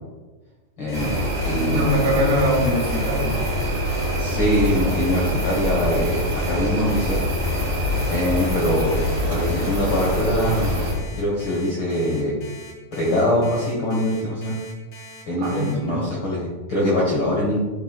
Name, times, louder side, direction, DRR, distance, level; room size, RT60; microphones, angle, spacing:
voice 1, 0.8-2.0 4.2-7.2 8.1-10.7 11.2-12.4 12.9-14.6 15.3-17.6, left 1 dB, 75° left, -5 dB, 1.1 m, -23 dB
Alarm, 0.9-15.7, left 3 dB, 35° left, 1.3 m, -43 dB
sound 1, 0.9-10.9, equal, 35° right, 0.9 m, -24 dB
voice 2, 1.6-3.4 15.4-16.1, equal, 75° right, -4 dB, 3.7 m, -23 dB
11.0 x 5.0 x 2.3 m, 1.3 s
omnidirectional pair, 4.3 m